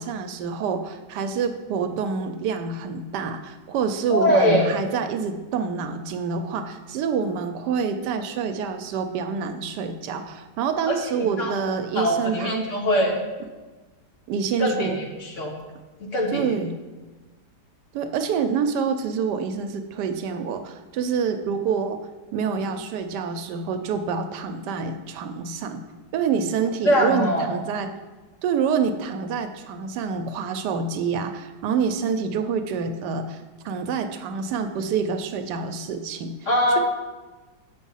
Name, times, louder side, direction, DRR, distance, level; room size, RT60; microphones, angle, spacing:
voice 1, 0.0-12.7 14.3-15.0 16.3-16.8 17.9-22.0 22.3-25.8 26.1-27.9 28.4-36.8, right 6 dB, 80° right, 8 dB, 1.2 m, -27 dB
voice 2, 4.1-4.7 10.9-11.0 11.4-11.5 11.9-13.2 14.6-15.5 16.0-16.4 26.9-27.5 36.5-36.8, equal, 50° left, 1 dB, 1.3 m, -22 dB
7.1 x 5.0 x 5.5 m, 1.3 s
omnidirectional pair, 1.8 m